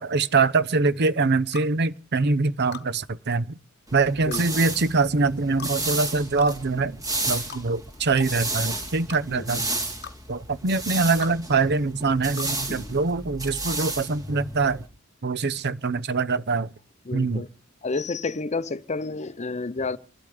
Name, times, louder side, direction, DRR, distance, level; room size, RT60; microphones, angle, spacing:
voice 1, 0.0-3.4 3.9-7.0 7.3-9.7 10.3-14.8 15.2-16.7 17.1-17.4, right 3 dB, 50° right, 0.7 m, -24 dB
sound 1, 1.5-1.7 2.7-2.9 4.3-4.5 5.6-5.8 6.4-6.5 7.5-7.7 8.2-8.3 9.1-9.2 10.0-10.2 11.2-11.4 12.4-12.5, left 8 dB, 50° left, 1.1 m, -38 dB
sound 2, 3.9-14.9, right 2 dB, 15° right, 3.2 m, -32 dB
voice 2, 4.2-4.7 9.3-9.7 12.7-13.0 17.1-17.5 17.8-20.0, left 3 dB, 30° left, 0.7 m, -31 dB
27.5 x 12.0 x 3.3 m
head